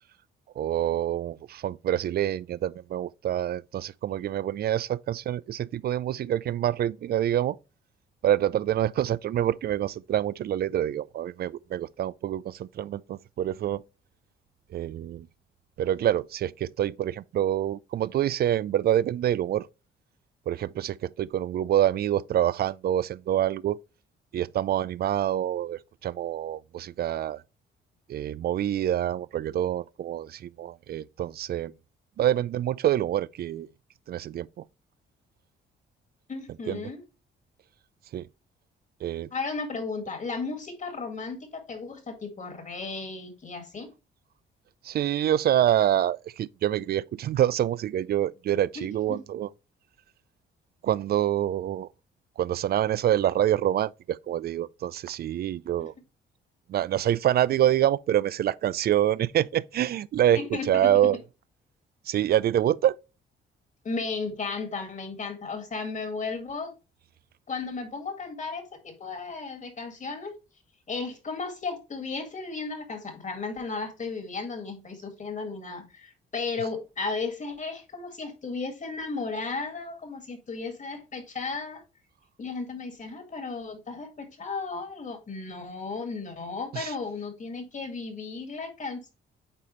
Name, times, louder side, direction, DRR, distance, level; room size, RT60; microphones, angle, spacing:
voice 1, 0.6-7.6 8.2-13.8 14.7-15.3 15.8-19.7 20.5-23.8 24.3-27.4 28.1-31.7 32.2-33.7 34.1-34.6 36.7-36.8 38.1-38.3 39.0-39.3 44.8-49.5 50.8-51.9 52.4-55.9 56.7-61.2 62.1-63.0 86.7-86.9, right 11 dB, 55° right, 0.4 m, -26 dB
voice 2, 36.3-37.0 39.3-43.9 48.8-49.2 55.8-55.9 60.3-61.1 63.8-66.7 67.5-70.3 70.9-81.8 82.4-89.1, left 4 dB, 40° left, 2.1 m, -35 dB
8.7 x 4.2 x 3.1 m
cardioid pair, 90°, 20 cm